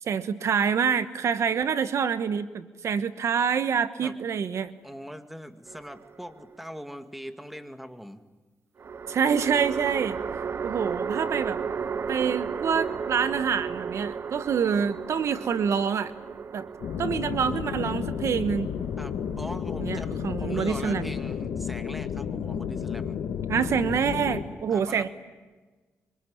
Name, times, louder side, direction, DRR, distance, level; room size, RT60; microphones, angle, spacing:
voice 1, 0.0-4.7 9.1-10.2 10.6-11.6 12.1-16.1 16.5-16.7 17.0-18.7 19.8-21.1 23.5-25.1, right 7 dB, 65° right, 12 dB, 1.3 m, -26 dB
voice 2, 4.8-8.2 19.0-23.2 24.7-25.1, equal, 5° right, 8 dB, 2.3 m, -41 dB
sound 1, 5.7-6.5 8.8-20.2, right 6 dB, 50° right, 0.8 m, -34 dB
sound 2, 16.8-24.4, left 8 dB, 85° left, 2.2 m, -32 dB
26.5 x 25.5 x 8.9 m, 1.3 s
cardioid pair, 95°, 5 cm